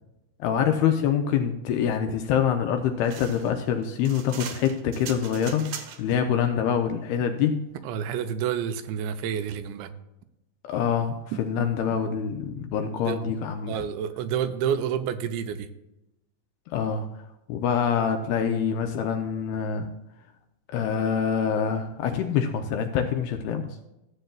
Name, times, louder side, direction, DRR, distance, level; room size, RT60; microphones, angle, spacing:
voice 1, 0.4-5.7 6.0-7.6 10.7-13.7 16.7-17.1 17.5-19.9 20.7-23.7, left 8 dB, 80° left, 5 dB, 2.4 m, -25 dB
sound 1, 3.0-6.2, right 8 dB, 70° right, 2.6 m, -40 dB
voice 2, 7.8-9.9 11.3-11.7 13.1-13.2 13.7-15.7, right 8 dB, 90° right, 9 dB, 3.1 m, -29 dB
14.5 x 7.8 x 2.3 m, 0.92 s
omnidirectional pair, 5.1 m